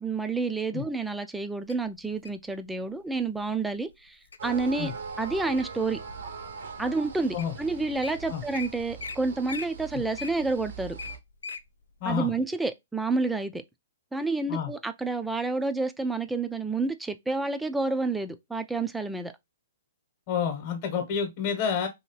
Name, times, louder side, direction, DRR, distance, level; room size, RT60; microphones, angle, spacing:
voice 1, 0.0-4.9 5.2-6.0 6.8-11.0 12.0-13.6 14.1-19.3, right 3 dB, 5° right, 0.3 m, -29 dB
Wild animals, 1.7-2.4 3.1-3.4 3.9-4.4 4.9-5.8 6.4-6.5 7.1-7.2 7.4-7.6 7.8-8.1 8.5-8.7 9.0-9.2 9.5-11.6 12.1-12.2, left 5 dB, 85° left, 0.4 m, -39 dB
sound 1, 4.4-11.2, right 5 dB, 75° right, 0.8 m, -41 dB
voice 2, 12.0-12.3 14.5-14.7 20.3-21.9, left 7 dB, 40° left, 1.0 m, -29 dB
2.8 x 2.7 x 3.0 m
hypercardioid pair, 130°, 0 cm